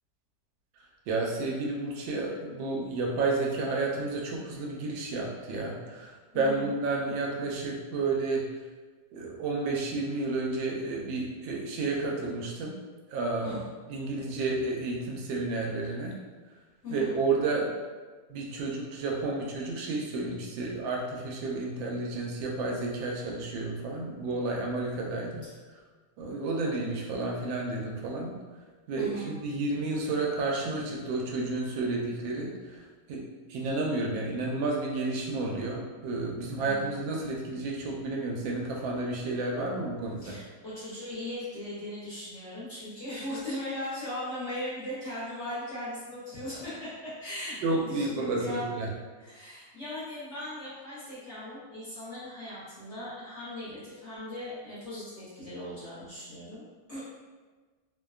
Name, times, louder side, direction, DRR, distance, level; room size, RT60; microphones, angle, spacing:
voice 1, 1.1-8.4 9.1-12.7 13.1-13.6 13.9-16.1 16.9-17.7 18.3-25.4 26.2-28.3 28.9-32.8 33.1-40.4 47.6-48.9, right 3 dB, 90° right, -1 dB, 1.3 m, -31 dB
voice 2, 6.3-6.7 13.4-13.6 16.8-17.2 25.4-25.5 28.9-29.3 36.6-37.0 40.2-48.7 49.2-57.0, left 1 dB, 50° left, -10 dB, 0.9 m, -38 dB
3.1 x 2.1 x 2.3 m, 1.4 s
omnidirectional pair, 2.0 m